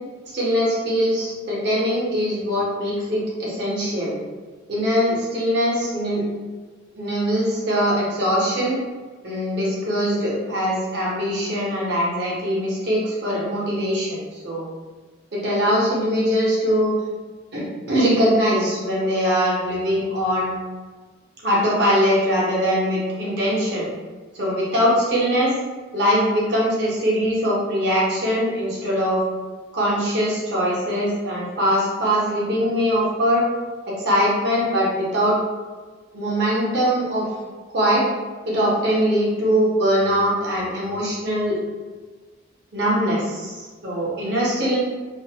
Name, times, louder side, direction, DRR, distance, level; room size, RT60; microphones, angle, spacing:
voice 1, 0.3-4.1 4.7-6.3 6.9-8.8 9.2-14.6 15.3-16.9 17.5-20.5 21.4-23.9 24.3-25.5 25.9-29.2 29.7-33.4 33.9-35.4 36.1-37.3 37.7-38.1 38.5-41.6 42.7-44.8, equal, 60° right, -6 dB, 0.8 m, -22 dB
2.4 x 2.1 x 2.8 m, 1.4 s
head